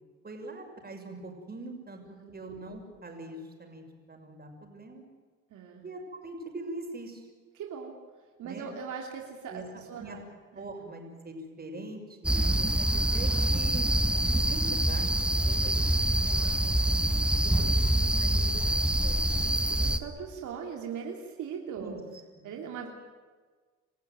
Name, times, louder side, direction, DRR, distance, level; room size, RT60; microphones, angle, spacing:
voice 1, 0.2-5.0 5.8-7.2 8.4-8.7 9.5-9.6 10.0-10.2 10.5-13.9 14.3-16.2 17.4-17.8 18.2-19.4 21.8-22.0 22.3-22.5, right 2 dB, 30° right, 3 dB, 6.3 m, -43 dB
voice 2, 5.5-5.8 7.5-7.9 8.4-10.3 10.5-10.6 12.4-12.5 16.2-16.8 17.4-18.2 19.3-22.0 22.4-22.9, right 6 dB, 80° right, 1 dB, 3.1 m, -40 dB
sound 1, 12.2-20.0, right 1 dB, 5° right, 1.5 m, -25 dB
28.0 x 15.0 x 9.4 m, 1.4 s
cardioid pair, 90°, 30 cm